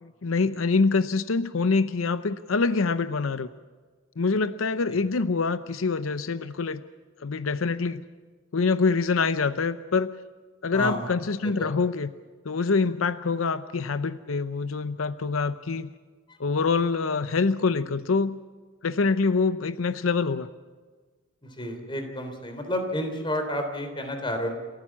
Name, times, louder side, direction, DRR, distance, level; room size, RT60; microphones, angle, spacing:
voice 1, 0.0-3.5 4.2-6.8 7.2-8.0 8.5-10.1 10.6-12.1 12.4-15.9 16.4-18.4 18.8-20.5, left 4 dB, 90° left, 13 dB, 0.7 m, -25 dB
voice 2, 10.7-11.1 11.4-11.8 16.3-16.4 21.4-24.5, equal, 25° left, 6 dB, 3.3 m, -31 dB
28.5 x 14.5 x 7.4 m, 1.4 s
head